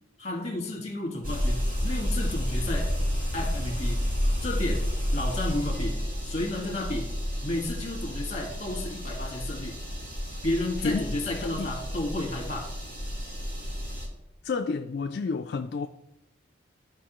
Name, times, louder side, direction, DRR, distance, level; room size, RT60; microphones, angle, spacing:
voice 1, 0.2-2.9 3.3-4.1 4.4-4.8 5.1-7.1 7.4-9.8 10.4-12.7, left 2 dB, 35° left, 1.6 m, -32 dB
sound 1, 1.2-14.1, equal, 50° right, 2.7 m, -30 dB
voice 2, 10.8-11.1 11.4-11.7 14.4-15.9, left 4 dB, 55° left, 0.3 m, -30 dB
13.5 x 5.1 x 3.0 m
head